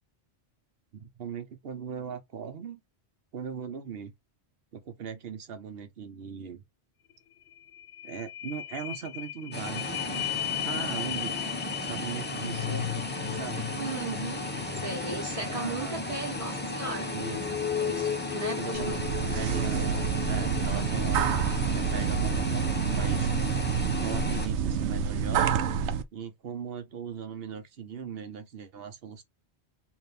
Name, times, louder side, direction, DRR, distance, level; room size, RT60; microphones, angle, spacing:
voice 1, 0.9-2.8 3.3-4.1 4.7-6.6 8.0-11.4 11.8-13.6 15.4-16.0 17.1-17.6 18.6-23.3 24.0-25.6 26.1-29.2, right 7 dB, 65° right, 1.0 m, -39 dB
sound 1, 7.1-7.2 7.5-23.4 23.9-24.0, left 11 dB, 80° left, 0.8 m, -37 dB
sound 2, 9.5-24.5, left 1 dB, 10° left, 0.6 m, -35 dB
voice 2, 13.7-14.4 14.7-17.1 17.8-19.1, right 3 dB, 35° right, 1.5 m, -36 dB
sound 3, 18.7-26.0, right 7 dB, 85° right, 0.9 m, -28 dB
4.1 x 2.7 x 3.3 m
omnidirectional pair, 1.1 m